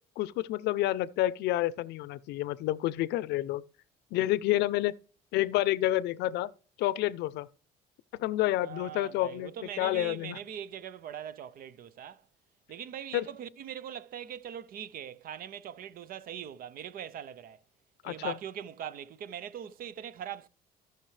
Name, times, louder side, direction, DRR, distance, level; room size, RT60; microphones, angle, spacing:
voice 1, 0.2-3.6 4.1-4.9 5.3-6.5 6.8-7.5 8.2-9.5 9.8-10.4 13.1-13.2 18.0-18.3, left 15 dB, 85° left, 0.5 m, -29 dB
voice 2, 8.6-12.2 12.7-17.6 18.0-20.5, right 9 dB, 60° right, 0.6 m, -41 dB
16.5 x 5.9 x 3.3 m
cardioid pair, 110°, 17 cm